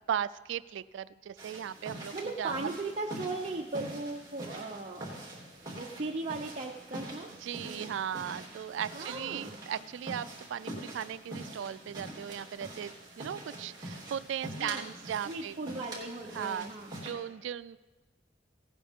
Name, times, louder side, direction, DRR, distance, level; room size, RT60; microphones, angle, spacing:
voice 1, 0.1-2.1 2.4-2.7 7.2-15.6 16.3-16.7 17.0-17.8, right 9 dB, 90° right, 16 dB, 0.3 m, -37 dB
sound 1, 1.4-17.1, right 1 dB, 20° right, 3.4 m, -45 dB
voice 2, 2.1-7.3 7.6-7.9 8.9-9.6 14.5-14.9 15.3-16.9, right 2 dB, 40° right, -1 dB, 0.8 m, -38 dB
17.5 x 9.4 x 3.6 m, 1.2 s
head